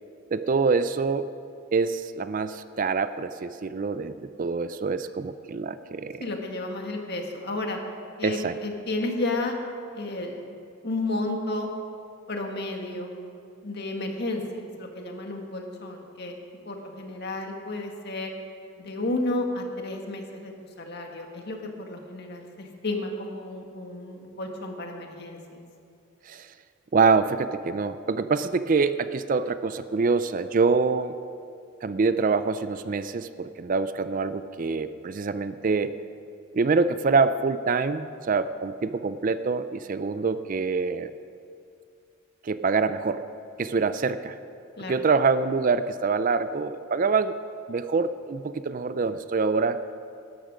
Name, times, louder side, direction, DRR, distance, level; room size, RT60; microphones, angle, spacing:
voice 1, 0.3-1.3 1.7-6.2 8.2-8.6 26.3-26.5 26.9-31.2 31.8-35.9 36.5-41.1 42.4-43.2 43.6-44.4 44.9-47.3 47.7-49.8, right 4 dB, 40° right, 12 dB, 0.4 m, -25 dB
voice 2, 6.2-7.8 8.2-9.6 9.9-10.4 10.8-11.7 12.3-13.1 13.6-16.3 16.6-18.3 18.8-25.6 44.8-44.9, left 2 dB, 50° left, 2 dB, 1.7 m, -32 dB
16.5 x 13.0 x 5.1 m, 2.5 s
head